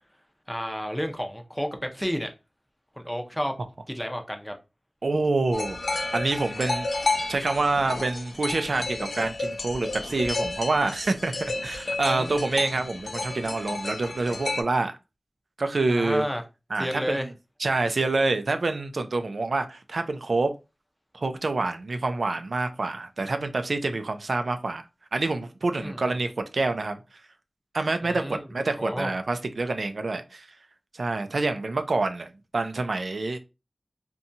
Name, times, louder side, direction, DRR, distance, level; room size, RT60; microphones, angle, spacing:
voice 1, 0.5-2.3 3.0-3.5 3.9-4.5 12.1-12.4 15.9-16.4 16.8-17.3 25.8-26.2 28.0-28.4 28.8-29.1, equal, 5° left, 0.5 m, -31 dB
voice 2, 5.0-5.8 6.1-6.9 7.3-15.0 15.6-16.2 16.7-17.3 17.6-20.5 21.1-24.8 25.1-27.0 27.7-30.5 30.9-32.3 32.5-33.4, right 3 dB, 80° right, 0.3 m, -27 dB
sound 1, 5.5-14.6, left 2 dB, 70° left, 0.4 m, -31 dB
2.7 x 2.2 x 2.6 m
wide cardioid pair, 70°, 0 cm